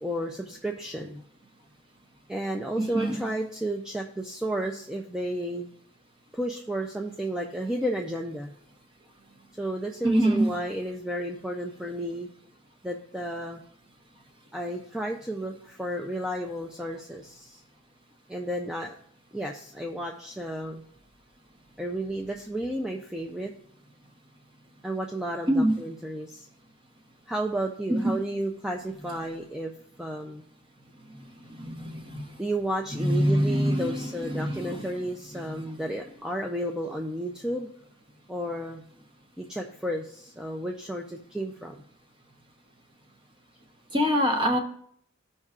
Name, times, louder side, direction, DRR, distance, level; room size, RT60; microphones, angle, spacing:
voice 1, 0.0-1.2 2.3-5.7 6.3-8.5 9.6-12.3 12.8-13.6 14.5-17.6 18.3-19.0 19.3-20.8 21.8-23.5 24.8-26.5 27.3-29.7 30.0-30.4 31.2-31.3 31.6-31.7 32.4-37.7 38.3-38.8 39.4-41.7, right 1 dB, 5° right, 1 dB, 0.3 m, -32 dB
voice 2, 10.0-10.5 25.5-25.7 27.9-28.1 31.5-32.3 33.0-34.0 34.3-34.9 43.9-44.6, equal, 25° right, 4 dB, 0.9 m, -24 dB
14.5 x 5.4 x 2.4 m, 0.68 s
head